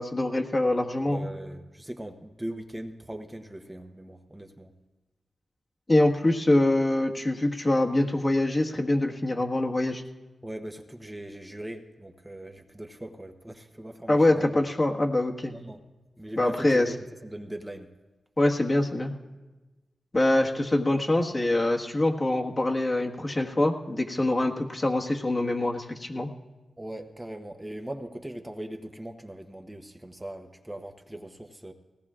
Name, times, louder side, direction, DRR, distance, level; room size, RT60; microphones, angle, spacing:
voice 1, 0.0-1.2 5.9-10.0 14.1-15.5 16.4-16.9 18.4-19.1 20.1-26.3, left 1 dB, 35° left, 1 dB, 1.5 m, -24 dB
voice 2, 1.0-4.7 10.4-14.5 15.5-15.8 16.2-16.9 17.2-17.9 26.8-31.7, right 1 dB, 15° right, 4 dB, 1.0 m, -40 dB
19.5 x 17.0 x 2.5 m, 1.2 s
cardioid pair, 60°, 0 cm